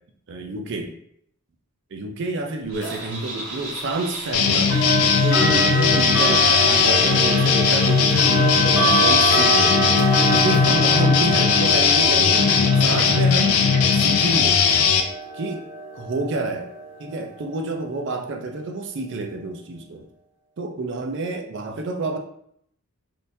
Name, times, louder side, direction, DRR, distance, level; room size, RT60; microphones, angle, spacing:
voice 1, 0.3-1.0 1.9-5.0 5.2-9.8 10.3-13.6 13.9-14.6 15.3-15.7 15.9-16.7 17.0-20.1 20.6-22.2, right 2 dB, 55° right, 4 dB, 0.4 m, -29 dB
sound 1, 2.7-14.2, right 1 dB, 85° right, 1.0 m, -35 dB
sound 2, 2.8-3.0 4.7-17.5, right 1 dB, 55° left, 1.0 m, -25 dB
sound 3, 4.3-15.0, left 6 dB, 85° left, 0.4 m, -18 dB
3.5 x 2.7 x 2.6 m, 0.70 s
head